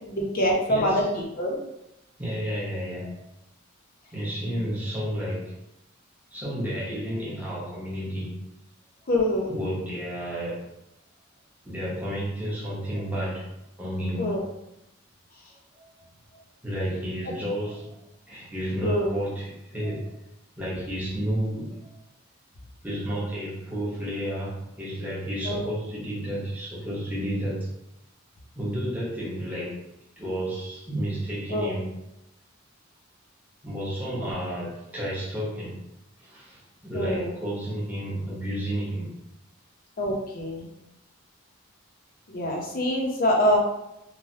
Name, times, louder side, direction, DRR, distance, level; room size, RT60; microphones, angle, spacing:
voice 1, 0.0-1.6 9.1-9.5 14.2-14.4 18.8-19.1 25.5-25.6 31.5-31.7 34.2-34.3 36.9-37.3 40.0-40.7 42.3-43.6, equal, 45° left, -1 dB, 0.6 m, -25 dB
voice 2, 0.7-1.1 2.2-3.1 4.1-5.4 6.3-8.4 9.5-10.6 11.7-13.5 13.8-14.3 15.8-15.9 16.6-17.9 18.3-20.1 20.6-21.8 22.8-27.7 28.5-29.8 30.2-31.9 33.6-35.8 36.2-39.1, equal, 10° right, -7 dB, 0.8 m, -31 dB
3.1 x 2.1 x 2.7 m, 0.87 s
head